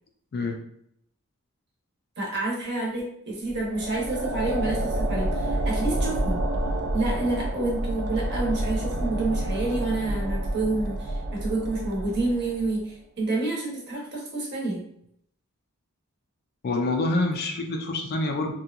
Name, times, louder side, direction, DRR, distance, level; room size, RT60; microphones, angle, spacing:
voice 1, 2.2-6.4 6.9-14.8, right 2 dB, 50° right, -3 dB, 0.9 m, -28 dB
sound 1, 3.5-12.8, right 1 dB, 85° right, 0.4 m, -29 dB
voice 2, 16.6-18.5, left 2 dB, 45° left, 3 dB, 0.4 m, -26 dB
2.8 x 2.2 x 2.3 m, 0.71 s
head